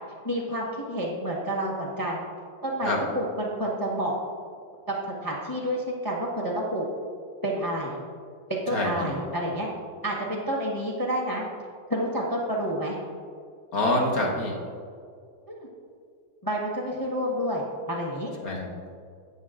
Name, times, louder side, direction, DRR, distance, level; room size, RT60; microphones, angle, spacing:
voice 1, 0.2-2.2 2.6-4.1 4.9-5.0 5.2-6.9 7.4-8.0 8.5-9.7 10.0-11.4 11.9-13.0 15.5-15.7 16.4-18.3, equal, 15° left, -3 dB, 1.1 m, -29 dB
voice 2, 8.7-9.1 13.7-14.5 18.4-18.7, left 1 dB, 50° left, -1 dB, 1.8 m, -26 dB
17.0 x 6.3 x 2.5 m, 2.2 s
omnidirectional pair, 2.0 m